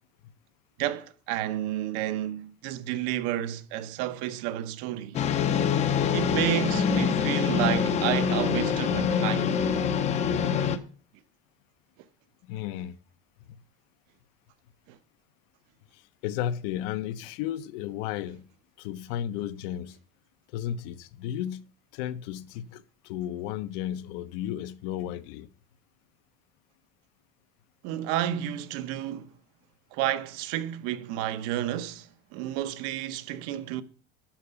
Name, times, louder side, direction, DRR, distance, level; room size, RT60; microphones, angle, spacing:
voice 1, 0.8-5.2 6.1-9.5 14.9-15.0 27.8-29.3 29.9-33.8, right 12 dB, 55° right, 0.7 m, -31 dB
sound 1, 5.1-10.8, left 7 dB, 25° left, 0.5 m, -25 dB
voice 2, 12.5-12.9 13.5-13.6 16.2-18.4 18.8-20.0 20.5-21.6 21.9-25.5, left 11 dB, 65° left, 0.7 m, -33 dB
12.0 x 4.8 x 6.6 m
cardioid pair, 180°, 30 cm